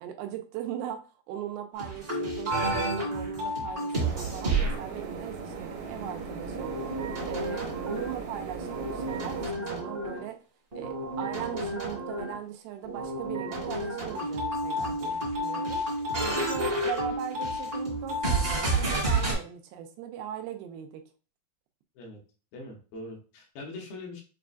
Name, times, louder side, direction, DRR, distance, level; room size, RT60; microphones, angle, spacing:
voice 1, 0.0-1.0 1.3-6.7 7.3-10.4 10.8-15.8 16.3-21.0, right 10 dB, 90° right, 5 dB, 2.5 m, -39 dB
sound 1, 1.7-4.8 6.5-8.2 8.6-10.3 10.7-12.4 12.8-19.3, right 1 dB, 35° right, 0.9 m, -30 dB
sound 2, 3.9-9.5, right 5 dB, 70° right, 1.9 m, -38 dB
voice 2, 22.5-24.2, left 2 dB, 80° left, 0 dB, 2.9 m, -42 dB
6.7 x 2.3 x 2.5 m, 0.37 s
omnidirectional pair, 4.3 m